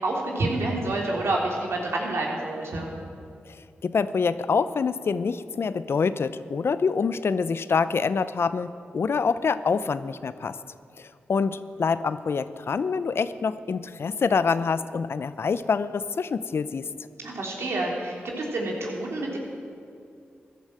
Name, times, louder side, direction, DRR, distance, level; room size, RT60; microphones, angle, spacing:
voice 1, 0.0-2.9 17.2-19.4, right 2 dB, 75° right, -2 dB, 3.4 m, -28 dB
voice 2, 3.5-10.6 11.0-16.9, left 5 dB, 65° left, 14 dB, 0.6 m, -26 dB
14.5 x 11.5 x 7.6 m, 2.4 s
supercardioid pair, 40°, 4 cm